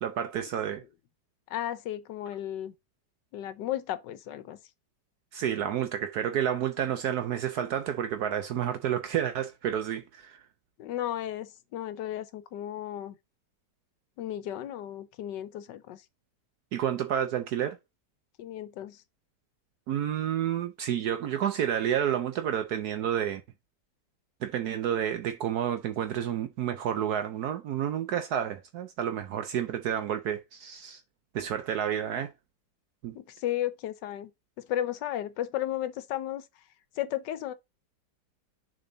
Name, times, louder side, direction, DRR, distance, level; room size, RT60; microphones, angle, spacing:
voice 1, 0.0-0.8 5.3-10.4 16.7-17.8 19.9-23.4 24.4-31.0 31.3-32.3 33.0-33.2, right 9 dB, 70° right, 1.1 m, -30 dB
voice 2, 1.5-2.7 3.3-4.6 10.8-13.2 14.2-16.0 18.4-19.0 33.1-34.3 34.6-36.4 37.0-37.5, left 12 dB, 85° left, 1.4 m, -34 dB
6.9 x 3.8 x 3.9 m
omnidirectional pair, 1.9 m